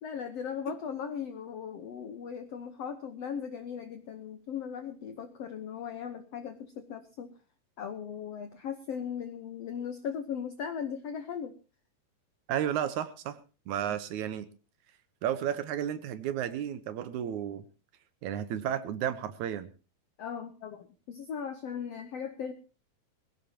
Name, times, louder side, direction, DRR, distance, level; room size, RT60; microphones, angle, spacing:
voice 1, 0.0-7.3 7.8-11.5 20.2-22.5, left 7 dB, 85° left, 8 dB, 1.3 m, -38 dB
voice 2, 12.5-13.4 13.7-14.5 15.2-17.6 18.2-19.7, right 10 dB, 70° right, 12 dB, 1.9 m, -32 dB
21.5 x 16.5 x 2.9 m, 0.33 s
omnidirectional pair, 4.4 m